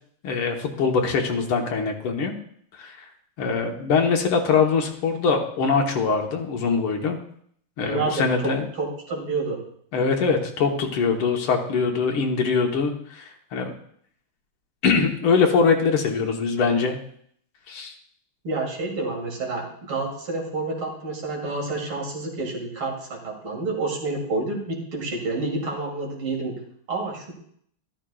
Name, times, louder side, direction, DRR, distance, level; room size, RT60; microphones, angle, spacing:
voice 1, 0.2-2.3 2.8-3.0 3.4-7.2 7.8-8.7 9.9-13.7 14.8-17.0 17.7-17.9, left 5 dB, 75° left, 3 dB, 2.0 m, -22 dB
voice 2, 7.8-9.6 18.4-26.6 26.9-27.3, right 3 dB, 70° right, 0 dB, 3.0 m, -29 dB
12.5 x 12.5 x 2.3 m, 0.65 s
omnidirectional pair, 2.4 m